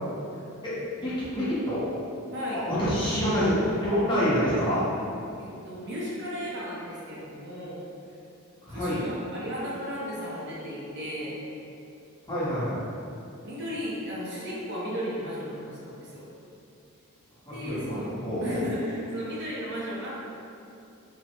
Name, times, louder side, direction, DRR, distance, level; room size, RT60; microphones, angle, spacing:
voice 1, 0.6-1.8 2.5-4.8 8.6-9.0 12.3-12.8 17.5-18.6, equal, 20° left, -10 dB, 0.7 m, -27 dB
voice 2, 2.3-2.6 5.4-7.8 8.7-11.4 13.4-16.2 17.5-18.1 18.4-20.1, equal, 55° right, -6 dB, 0.7 m, -35 dB
3.1 x 2.1 x 2.8 m, 2.6 s
head